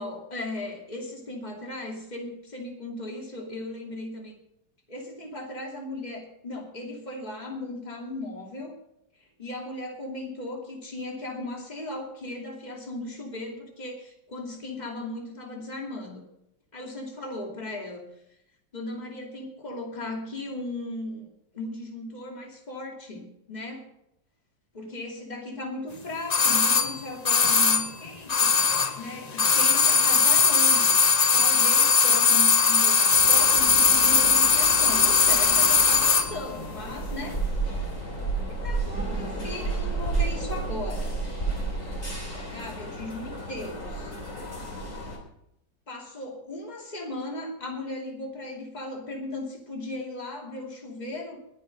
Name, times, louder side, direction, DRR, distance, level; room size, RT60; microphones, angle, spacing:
voice 1, 0.0-4.3 4.9-8.7 9.2-16.2 16.7-18.1 18.7-21.3 21.5-23.9 24.7-28.6 28.9-37.4 38.5-41.2 42.5-44.1 45.9-51.4, left 2 dB, 20° left, 0 dB, 2.7 m, -37 dB
sound 1, 26.3-29.1 29.3-36.3 36.6-36.7, left 5 dB, 85° left, 0.3 m, -20 dB
sound 2, 33.1-45.2, right 3 dB, 45° left, 3.9 m, -32 dB
21.5 x 7.3 x 5.3 m, 0.81 s
omnidirectional pair, 2.0 m